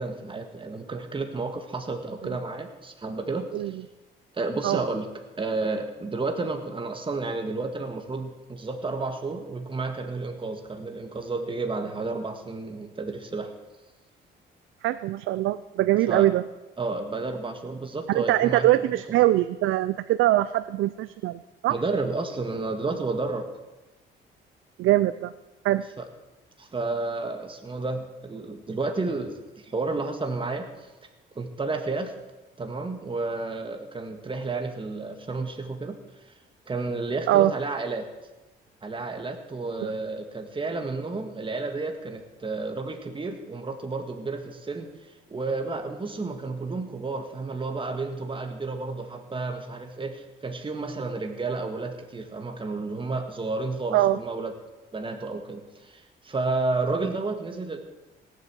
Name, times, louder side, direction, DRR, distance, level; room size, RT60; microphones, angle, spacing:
voice 1, 0.0-3.5 4.3-5.1 5.4-13.5 16.1-16.3 16.8-18.8 21.7-23.5 26.0-26.1 26.6-30.7 31.4-32.1 32.6-36.0 36.7-38.1 38.8-44.9 45.3-54.5 54.9-57.8, right 3 dB, 25° right, 5 dB, 1.8 m, -31 dB
voice 2, 14.8-16.4 18.1-21.8 24.8-25.3 25.6-25.8 37.3-37.5 39.8-39.9 53.9-54.2 57.1-57.2, right 15 dB, 85° right, 14 dB, 0.5 m, -23 dB
17.5 x 8.1 x 7.4 m, 1.1 s
cardioid pair, 90°, 20 cm